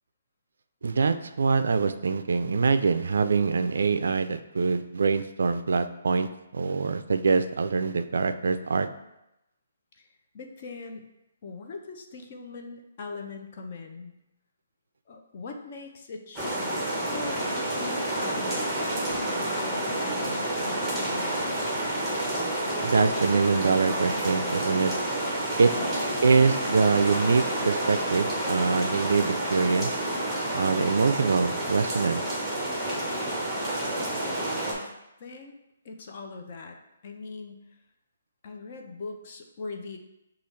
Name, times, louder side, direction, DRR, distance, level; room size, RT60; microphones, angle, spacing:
voice 1, 0.8-6.3 6.5-8.9 22.8-24.9 25.6-25.7 26.2-29.9 30.5-32.2, right 4 dB, 75° right, 10 dB, 0.3 m, -24 dB
voice 2, 10.3-11.0 11.4-14.1 15.1-21.6 25.7-26.0 34.6-34.9 35.2-35.5 35.8-36.8 37.0-37.6 38.4-40.0, left 4 dB, 40° left, 3 dB, 0.6 m, -41 dB
sound 1, 16.4-34.7, right 1 dB, ahead, 0.9 m, -29 dB
6.8 x 2.4 x 3.2 m, 0.88 s
hypercardioid pair, 165°, 0 cm